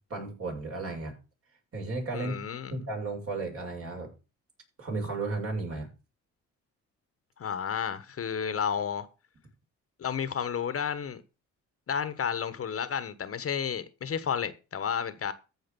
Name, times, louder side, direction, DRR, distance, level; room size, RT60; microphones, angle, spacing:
voice 1, 0.1-1.1 1.7-2.3 2.7-4.1 4.8-5.9, right 3 dB, 50° right, 6.9 m, -34 dB
voice 2, 2.1-2.8 7.4-9.1 10.0-11.2 11.9-15.3, left 7 dB, 50° left, 1.3 m, -32 dB
14.5 x 5.0 x 7.0 m
cardioid pair, 90°, 30 cm